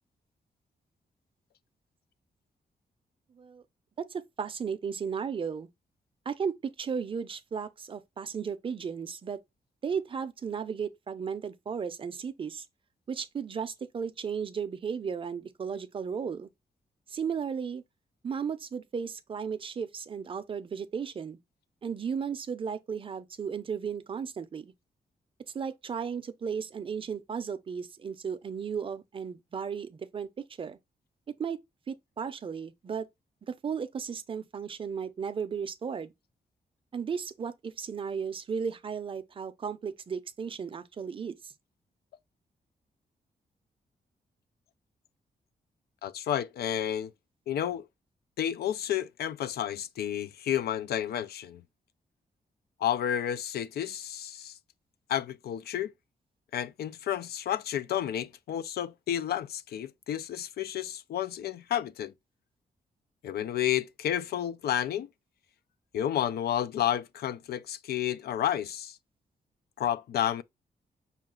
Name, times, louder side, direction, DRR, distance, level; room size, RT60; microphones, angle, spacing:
voice 1, 4.1-5.7 6.3-9.4 9.8-12.7 13.1-16.5 17.1-17.8 18.2-21.4 21.8-24.7 25.5-30.8 31.4-31.6 31.9-33.1 33.5-36.1 36.9-41.5, right 6 dB, 35° right, 0.5 m, -35 dB
voice 2, 46.0-47.1 47.5-47.9 48.4-51.6 52.8-54.5 55.1-55.9 56.5-62.1 63.2-65.1 65.9-69.0 69.8-70.4, left 10 dB, 80° left, 0.4 m, -31 dB
5.6 x 2.4 x 3.7 m
wide cardioid pair, 160°, 16 cm